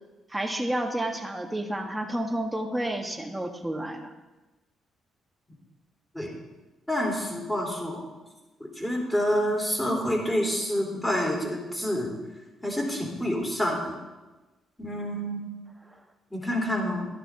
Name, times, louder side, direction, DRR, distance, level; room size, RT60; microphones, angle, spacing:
voice 1, 0.3-4.1, right 1 dB, 10° right, 4 dB, 1.4 m, -30 dB
voice 2, 6.9-8.0 8.8-12.1 12.6-14.0 14.8-15.4 16.3-17.1, equal, 10° left, -1 dB, 3.5 m, -28 dB
12.5 x 11.0 x 3.7 m, 1.1 s
cardioid pair, 90°, 0 cm